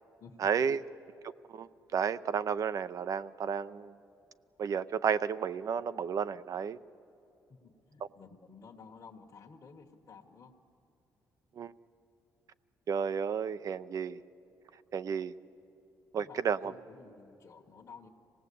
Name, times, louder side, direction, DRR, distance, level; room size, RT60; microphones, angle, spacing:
voice 1, 0.4-0.8 1.5-4.0 4.6-6.8 11.6-11.7 12.9-14.2 14.9-15.3 16.1-16.7, right 7 dB, 55° right, 13 dB, 0.6 m, -32 dB
voice 2, 7.6-10.5 16.2-18.1, left 5 dB, 45° left, -1 dB, 1.4 m, -53 dB
25.5 x 18.0 x 8.5 m, 2.8 s
cardioid pair, 80°, 7 cm